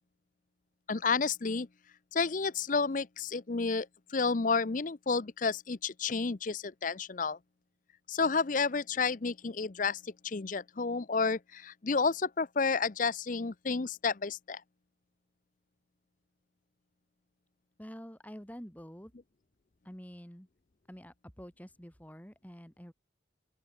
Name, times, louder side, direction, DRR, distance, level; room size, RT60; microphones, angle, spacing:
voice 1, 0.9-1.7 2.1-7.4 8.1-14.6, left 4 dB, 40° left, 0.6 m, -31 dB
voice 2, 17.8-19.1 19.8-20.5 20.9-22.9, equal, 10° left, 2.4 m, -48 dB
open air
head